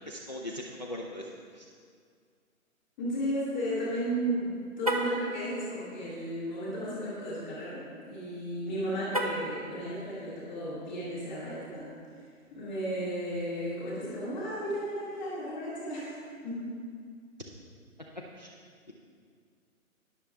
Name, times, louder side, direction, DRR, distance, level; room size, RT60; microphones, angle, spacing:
voice 1, 0.1-1.3 1.5-1.7 18.4-18.5, left 1 dB, 30° left, -1 dB, 0.5 m, -39 dB
voice 2, 3.0-11.9 12.5-16.8, equal, ahead, -15 dB, 1.0 m, -34 dB
Car, 4.8-5.2 9.1-9.6, right 1 dB, 25° right, 0.5 m, -31 dB
20.5 x 6.9 x 3.4 m, 2.1 s
hypercardioid pair, 170°, 43 cm